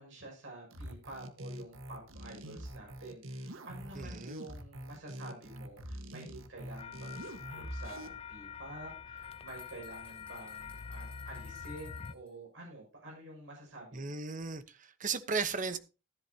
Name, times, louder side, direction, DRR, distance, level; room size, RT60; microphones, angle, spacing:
voice 1, 0.0-14.1, right 1 dB, 70° right, 6.3 m, -49 dB
sound 1, 0.7-8.1, right 1 dB, 90° right, 1.5 m, -44 dB
voice 2, 4.0-4.4 13.9-15.8, right 4 dB, 40° right, 1.0 m, -36 dB
sound 2, 6.8-12.1, left 6 dB, 30° left, 0.4 m, -45 dB
sound 3, 8.8-12.3, left 3 dB, 5° left, 4.1 m, -60 dB
14.5 x 11.0 x 2.9 m
head